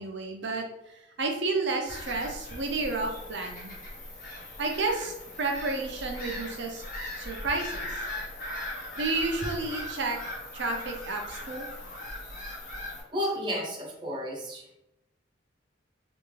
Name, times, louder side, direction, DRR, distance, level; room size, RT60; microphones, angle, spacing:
voice 1, 0.0-3.7 4.6-6.9 7.2-8.0 9.0-10.2 10.5-11.7, right 3 dB, 65° right, 3 dB, 0.6 m, -31 dB
Bird vocalization bird call bird song / Gull seagull, 1.9-13.0, left 1 dB, 45° left, 1.0 m, -39 dB
voice 2, 13.1-14.7, equal, 25° right, -2 dB, 0.6 m, -32 dB
3.5 x 2.5 x 3.1 m, 0.87 s
head